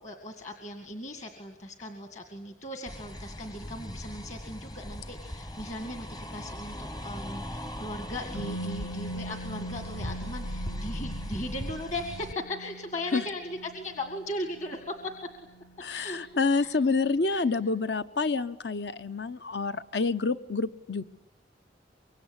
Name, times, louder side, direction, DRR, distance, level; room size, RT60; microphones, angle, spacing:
voice 1, 0.0-15.2 15.9-16.2 16.6-16.7 17.3-17.4, left 1 dB, 40° left, 6 dB, 2.1 m, -38 dB
sound 1, 2.9-12.3, equal, 20° left, 1.0 m, -39 dB
Musical instrument, 8.3-16.2 16.5-16.7, right 1 dB, 85° left, 2.8 m, -42 dB
voice 2, 15.8-21.0, left 4 dB, 65° left, 13 dB, 1.0 m, -28 dB
25.0 x 23.5 x 9.8 m, 0.81 s
head